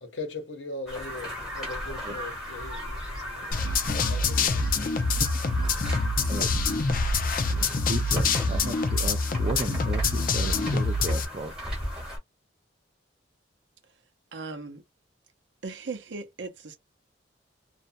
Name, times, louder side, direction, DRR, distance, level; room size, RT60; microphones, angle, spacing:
voice 1, 0.0-3.7 4.1-4.7, left 2 dB, 75° left, 0.9 m, -39 dB
sound 1, 0.9-12.2, equal, 5° right, 1.1 m, -35 dB
sound 2, 3.5-11.3, left 3 dB, 45° left, 0.5 m, -26 dB
voice 2, 7.9-11.5, right 2 dB, 35° right, 0.4 m, -34 dB
voice 3, 14.3-14.8 15.6-16.8, right 4 dB, 70° right, 0.6 m, -37 dB
2.5 x 2.2 x 2.5 m
head